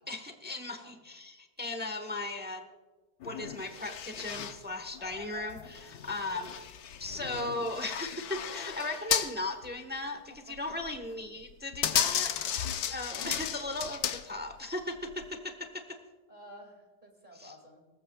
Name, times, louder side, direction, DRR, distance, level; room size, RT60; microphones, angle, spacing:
voice 1, 0.0-2.7 3.2-6.6 7.0-10.2 10.5-12.6 12.9-16.0 17.4-17.5, left 2 dB, 10° right, 6 dB, 0.7 m, -37 dB
voice 2, 0.7-1.0 10.3-11.1 12.2-12.8 13.1-13.9 16.3-17.9, equal, 25° right, 2 dB, 2.2 m, -53 dB
sound 1, 3.2-3.8 4.1-4.6 4.9-8.2, left 7 dB, 85° left, 0.5 m, -47 dB
sound 2, 3.7-4.6 5.1-9.4 9.6-9.7 10.6-11.0 11.4-14.5 15.1-15.3, left 9 dB, 65° left, 1.1 m, -34 dB
23.5 x 19.5 x 2.3 m, 1.3 s
omnidirectional pair, 1.9 m